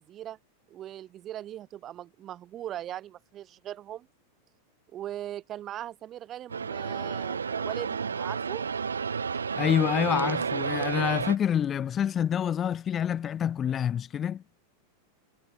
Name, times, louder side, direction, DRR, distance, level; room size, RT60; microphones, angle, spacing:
voice 1, 0.1-0.4 0.7-4.1 4.9-8.7, right 12 dB, 30° right, 2.1 m, -39 dB
sound 1, 6.5-11.4, right 6 dB, 70° right, 1.4 m, -31 dB
voice 2, 9.6-14.4, left 9 dB, 25° left, 0.5 m, -27 dB
figure-of-eight pair, 90°, 0 cm